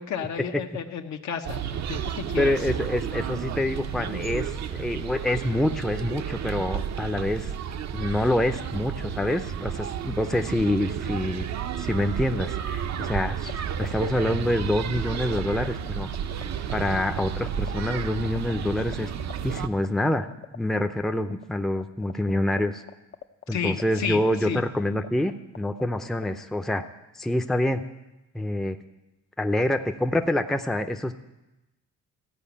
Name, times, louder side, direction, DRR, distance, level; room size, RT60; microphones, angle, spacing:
voice 1, 0.0-2.6 23.5-24.6, left 7 dB, 65° left, 5 dB, 1.0 m, -32 dB
sound 1, 1.4-19.7, right 8 dB, 60° right, 0.7 m, -32 dB
voice 2, 2.4-7.5 7.9-11.5 11.8-13.5 13.8-16.1 16.7-19.1 19.4-20.3 20.5-22.8 23.5-26.8 27.1-27.8 28.3-28.8 29.4-31.1, left 1 dB, ahead, 6 dB, 0.6 m, -26 dB
sound 2, 12.9-26.3, left 9 dB, 45° left, 0.6 m, -39 dB
14.5 x 5.0 x 8.5 m, 1.0 s
cardioid pair, 90°, 30 cm